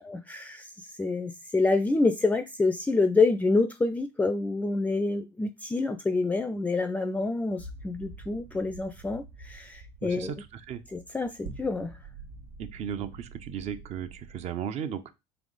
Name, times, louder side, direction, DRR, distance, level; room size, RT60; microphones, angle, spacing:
voice 1, 0.0-10.3 10.9-12.0, left 3 dB, 10° left, 0.4 m, -27 dB
sound 1, 7.6-14.4, right 3 dB, 80° right, 1.0 m, -47 dB
voice 2, 10.0-10.8 12.6-15.1, right 8 dB, 50° right, 0.6 m, -36 dB
3.5 x 2.9 x 3.9 m
hypercardioid pair, 80°, 14 cm